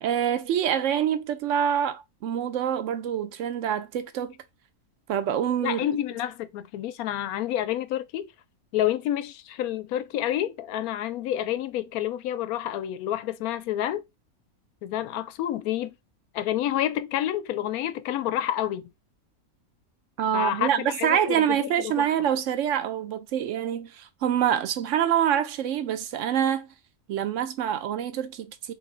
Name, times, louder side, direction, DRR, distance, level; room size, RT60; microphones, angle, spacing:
voice 1, 0.0-4.3 5.1-5.9 20.2-26.7 27.1-28.7, right 9 dB, 65° right, 0.9 m, -26 dB
voice 2, 5.6-8.3 8.7-14.0 14.8-16.0 16.3-18.8 20.3-22.1, left 12 dB, 80° left, 1.0 m, -29 dB
3.4 x 3.1 x 3.7 m
omnidirectional pair, 1.5 m